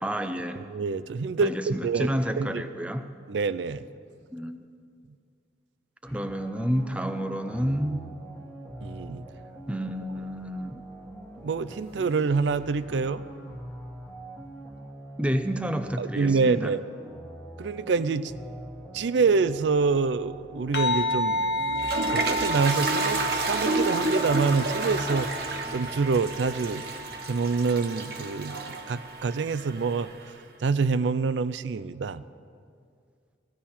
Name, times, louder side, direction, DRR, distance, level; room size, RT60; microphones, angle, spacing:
voice 1, 0.0-0.6 1.4-3.1 4.3-4.6 6.0-8.1 9.7-10.8 15.2-16.8, equal, 5° right, 8 dB, 0.5 m, -30 dB
voice 2, 0.7-2.1 2.4-2.6 3.3-3.8 8.8-9.2 11.4-13.2 16.0-16.8 17.6-18.3 18.9-21.4 22.1-25.3 25.7-26.8 27.3-30.1 30.6-32.2, right 4 dB, 85° right, 14 dB, 0.4 m, -26 dB
sound 1, 6.0-25.2, right 1 dB, 10° left, 1.4 m, -44 dB
sound 2, 20.7-29.4, left 1 dB, 65° left, 1.0 m, -32 dB
Toilet flush, 21.4-30.3, right 3 dB, 60° right, 1.2 m, -31 dB
16.0 x 16.0 x 4.3 m, 2.2 s
head